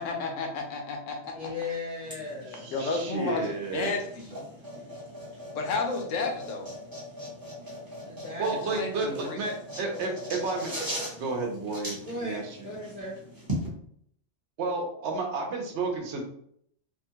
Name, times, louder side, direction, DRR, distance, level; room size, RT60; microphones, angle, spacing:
voice 1, 0.0-1.5 2.7-4.4 5.5-6.7 8.7-9.4, left 3 dB, 85° left, 3 dB, 1.0 m, -32 dB
voice 2, 1.3-2.7 8.1-8.9 12.0-13.2, left 2 dB, 15° left, -7 dB, 0.6 m, -37 dB
sound 1, 2.0-13.7, equal, 20° right, 0.8 m, -40 dB
voice 3, 2.5-3.9 8.4-10.7 11.1-12.7 14.6-16.2, right 3 dB, 70° right, 1 dB, 0.9 m, -32 dB
2.8 x 2.2 x 2.8 m, 0.68 s
omnidirectional pair, 1.3 m